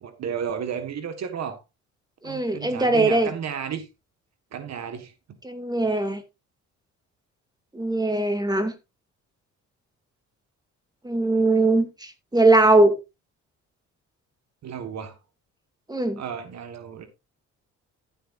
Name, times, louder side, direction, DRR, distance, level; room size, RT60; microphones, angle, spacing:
voice 1, 0.0-1.6 2.2-3.9 4.5-5.1 14.6-15.2 16.1-17.1, right 7 dB, 60° right, 1.6 m, -33 dB
voice 2, 2.2-3.3 5.4-6.2 7.7-8.7 11.0-13.0 15.9-16.2, right 2 dB, 15° right, 2.3 m, -20 dB
14.0 x 7.9 x 2.6 m
cardioid pair, 90°, 30 cm